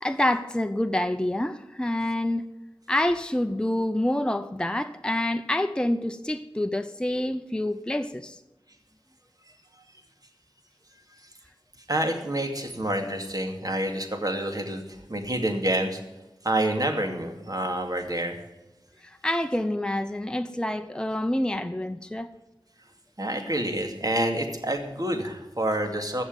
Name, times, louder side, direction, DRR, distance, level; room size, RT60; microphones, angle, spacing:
voice 1, 0.0-2.5 2.9-8.4 19.0-22.3, left 1 dB, 10° left, 0.7 m, -27 dB
voice 2, 11.9-14.8 15.1-16.0 16.4-18.4 23.2-26.2, right 1 dB, 45° right, 2.5 m, -28 dB
15.5 x 6.7 x 9.4 m
wide cardioid pair, 55°, 9 cm